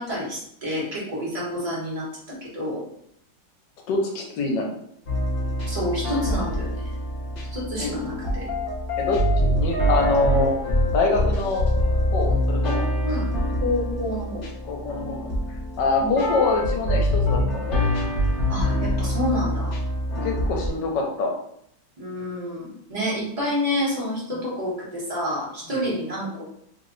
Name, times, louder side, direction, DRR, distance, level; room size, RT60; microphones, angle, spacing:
voice 1, 0.0-2.8 5.7-6.8 7.5-8.4 13.0-13.3 13.6-14.4 16.0-16.1 18.5-19.8 22.0-26.4, left 1 dB, 30° right, -6 dB, 0.8 m, -28 dB
voice 2, 3.9-4.7 7.8-8.0 9.0-10.6 10.9-11.6 12.1-12.9 14.7-15.3 15.8-17.8 20.1-21.3 25.7-25.9, left 3 dB, 80° left, 1 dB, 1.3 m, -25 dB
sound 1, 5.1-20.7, equal, 50° left, 0.6 m, -25 dB
3.1 x 2.1 x 3.7 m, 0.71 s
omnidirectional pair, 1.9 m